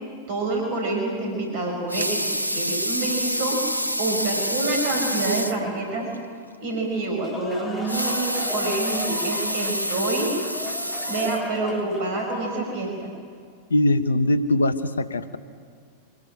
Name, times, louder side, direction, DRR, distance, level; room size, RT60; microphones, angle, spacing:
voice 1, 0.3-2.2 2.5-3.6 4.0-6.1 6.6-10.3 10.6-10.8 11.1-13.1, right 2 dB, 50° right, 1 dB, 5.7 m, -27 dB
Water tap faucet / Sink (filling or washing) / Liquid, 1.7-5.7 6.1-6.2 6.5-6.6 7.7-11.9 12.5-12.6, equal, 90° left, 0.7 m, -27 dB
sound 1, 7.0-12.3, left 2 dB, 20° left, 3.9 m, -37 dB
voice 2, 13.7-15.4, left 1 dB, 75° left, 13 dB, 1.1 m, -21 dB
25.0 x 18.5 x 9.9 m, 2.1 s
figure-of-eight pair, 90°, 0 cm